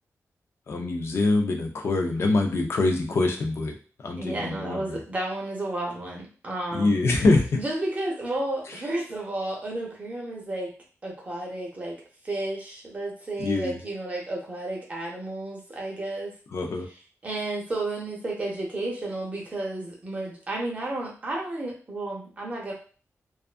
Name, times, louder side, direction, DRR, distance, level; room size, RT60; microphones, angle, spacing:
voice 1, 0.7-5.0 6.7-7.6 8.7-8.8 13.4-13.8 16.5-16.9, left 2 dB, 55° left, 3 dB, 0.4 m, -25 dB
voice 2, 4.2-7.1 7.5-10.7 11.0-16.3 17.2-22.7, right 2 dB, 25° right, -2 dB, 0.7 m, -32 dB
2.4 x 2.3 x 2.4 m, 0.38 s
wide cardioid pair, 175°, 5 cm